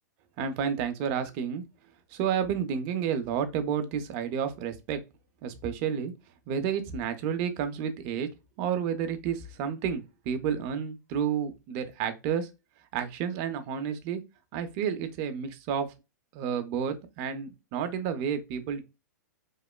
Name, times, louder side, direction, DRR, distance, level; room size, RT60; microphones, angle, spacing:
voice 1, 0.4-1.6 2.1-5.0 5.4-6.1 6.5-8.3 8.6-12.5 12.9-14.2 14.5-15.9 16.3-18.8, right 8 dB, 40° right, 0.4 m, -30 dB
2.9 x 2.1 x 2.2 m
hypercardioid pair, 130°, 10 cm